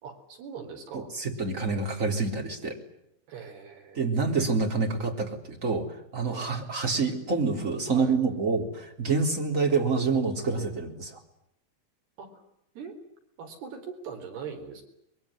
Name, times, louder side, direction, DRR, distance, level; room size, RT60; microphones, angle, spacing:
voice 1, 0.0-1.1 3.3-4.2 6.2-6.5 7.8-8.2 12.2-12.3 12.8-13.0 13.4-14.8, right 6 dB, 60° right, 5 dB, 5.9 m, -41 dB
voice 2, 0.9-2.8 4.0-11.2, right 4 dB, 20° right, 3 dB, 3.5 m, -27 dB
24.0 x 22.5 x 9.9 m, 0.78 s
omnidirectional pair, 5.2 m